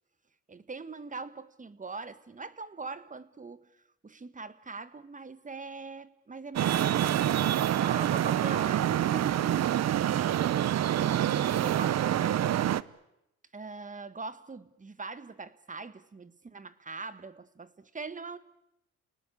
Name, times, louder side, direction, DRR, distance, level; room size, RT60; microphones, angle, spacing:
voice 1, 0.5-7.1 7.7-10.4 11.0-12.6 13.5-18.4, right 4 dB, 25° right, 14 dB, 1.5 m, -42 dB
Traffic noise roadway noise, 6.5-12.8, right 11 dB, 60° right, 0.8 m, -26 dB
29.5 x 19.0 x 8.5 m, 0.86 s
cardioid pair, 90°, 30 cm